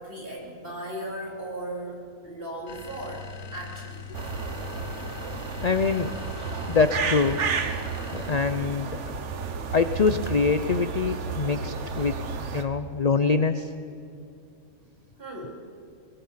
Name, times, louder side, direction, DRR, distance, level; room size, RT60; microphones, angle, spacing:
voice 1, 0.0-4.1 15.2-15.6, right 1 dB, 40° right, -2 dB, 4.4 m, -37 dB
sound 1, 2.7-8.8, left 6 dB, 85° left, 1.7 m, -41 dB
sound 2, 4.1-12.6, right 5 dB, 55° right, 1.4 m, -32 dB
voice 2, 5.6-6.1 6.7-7.4 8.1-9.0 9.7-12.2 12.5-13.7, left 4 dB, 50° left, 10 dB, 0.5 m, -24 dB
22.5 x 22.5 x 5.7 m, 2.5 s
omnidirectional pair, 1.5 m